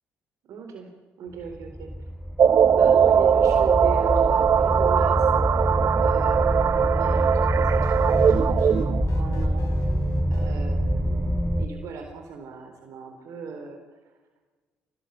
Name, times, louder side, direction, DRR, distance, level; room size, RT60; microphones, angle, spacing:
voice 1, 0.4-0.9 1.2-1.9 2.7-5.3 6.0-9.7 10.3-13.8 14.1-14.2, right 5 dB, 65° right, 4 dB, 4.2 m, -38 dB
sound 1, 1.5-11.7, equal, ahead, 4.1 m, -26 dB
sound 2, 2.4-9.0, right 8 dB, 50° right, 0.8 m, -20 dB
sound 3, 7.8-10.5, left 3 dB, 70° left, 4.8 m, -44 dB
28.5 x 20.0 x 9.3 m, 1.3 s
hypercardioid pair, 50°, 6 cm